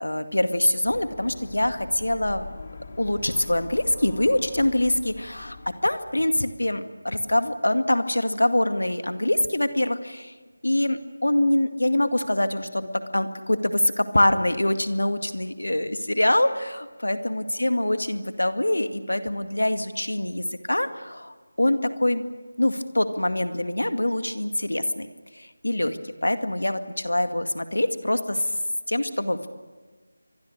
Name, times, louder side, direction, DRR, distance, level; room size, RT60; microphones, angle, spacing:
voice 1, 0.0-2.5 3.0-5.6 5.8-10.3 10.6-22.2 22.6-25.1 25.3-28.5 28.9-29.4, left 1 dB, 85° left, 8 dB, 2.1 m, -24 dB
sound 1, 0.8-6.5, left 3 dB, 35° left, 2.8 m, -42 dB
29.5 x 24.5 x 6.7 m, 1.3 s
figure-of-eight pair, 165°, 0 cm